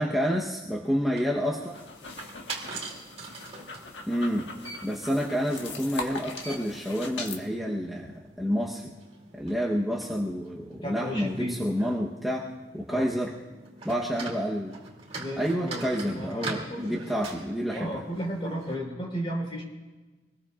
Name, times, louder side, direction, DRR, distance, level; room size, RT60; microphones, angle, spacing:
voice 1, 0.0-1.8 4.1-4.5 4.8-8.9 9.3-13.3 13.8-14.8 15.4-18.0, equal, ahead, -4 dB, 1.0 m, -29 dB
sound 1, 0.8-18.8, right 3 dB, 35° right, 2.8 m, -43 dB
sound 2, 1.6-7.4, left 3 dB, 80° left, 1.6 m, -41 dB
voice 2, 10.7-11.6 12.9-13.0 13.9-14.0 15.2-17.0 17.7-19.6, equal, 30° left, -1 dB, 4.5 m, -34 dB
25.5 x 20.0 x 2.5 m, 1.2 s
head